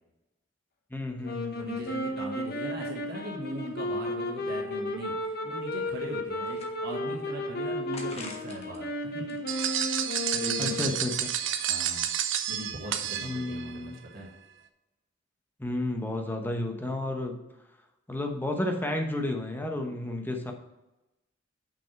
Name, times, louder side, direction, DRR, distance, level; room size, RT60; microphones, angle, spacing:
voice 1, 0.9-1.7 10.6-11.3 13.2-14.0 15.6-17.4 18.1-20.5, left 1 dB, 10° left, 3 dB, 0.9 m, -32 dB
sound 1, 1.2-11.3, left 1 dB, 50° left, 1.1 m, -34 dB
voice 2, 1.6-9.3 9.7-9.9 10.3-10.9 11.7-12.1 12.5-14.3, right 1 dB, 50° right, -2 dB, 1.7 m, -39 dB
sound 2, 6.3-7.2 7.9-8.8 9.2-10.4, left 3 dB, 30° left, 1.2 m, -47 dB
sound 3, 9.5-13.7, right 10 dB, 65° right, 0.6 m, -30 dB
6.1 x 5.7 x 5.8 m, 0.99 s
head